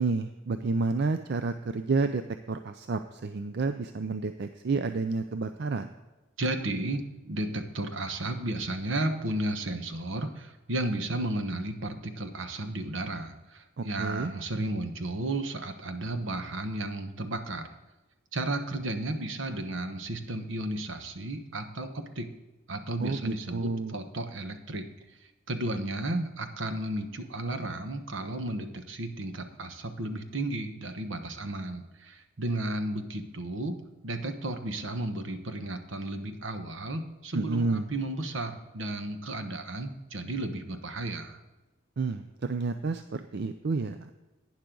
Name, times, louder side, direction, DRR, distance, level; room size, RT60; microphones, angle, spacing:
voice 1, 0.0-2.2 2.5-5.9 13.8-14.3 23.0-24.0 37.3-37.9 42.0-44.1, right 3 dB, 55° right, 9 dB, 0.5 m, -30 dB
voice 2, 6.4-17.7 18.3-22.3 22.7-24.9 25.5-33.8 34.0-41.4, right 2 dB, 70° right, 7 dB, 1.1 m, -33 dB
11.5 x 9.5 x 3.8 m, 1.1 s
head